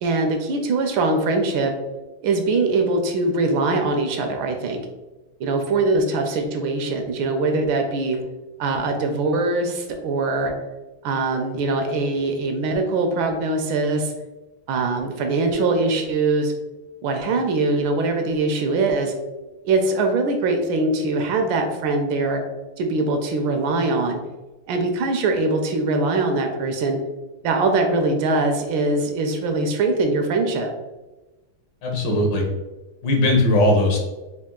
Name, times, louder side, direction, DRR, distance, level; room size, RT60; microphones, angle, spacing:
voice 1, 0.0-1.7 2.2-4.9 5.4-8.2 8.6-10.5 11.0-14.1 14.7-16.5 17.0-19.1 19.6-22.4 22.8-24.2 24.7-27.0 27.4-30.7, right 3 dB, 80° right, 4 dB, 1.4 m, -22 dB
voice 2, 31.8-32.4 33.0-34.0, left 1 dB, 70° left, 1 dB, 1.5 m, -18 dB
4.5 x 2.3 x 3.6 m, 1.1 s
omnidirectional pair, 2.2 m